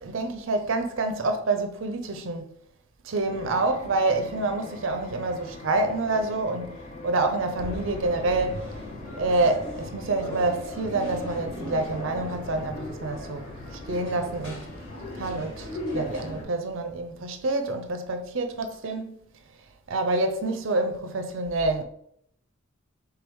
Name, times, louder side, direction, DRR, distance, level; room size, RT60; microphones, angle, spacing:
voice 1, 0.0-2.4 3.0-6.7 7.0-8.7 9.2-13.5 13.7-14.7 15.2-19.2 19.9-21.8, right 2 dB, 65° right, 0.5 m, -27 dB
sound 1, 3.3-16.3, left 2 dB, 35° left, 0.6 m, -44 dB
sound 2, 7.6-16.4, left 1 dB, 65° left, 1.6 m, -37 dB
3.6 x 3.3 x 4.5 m
head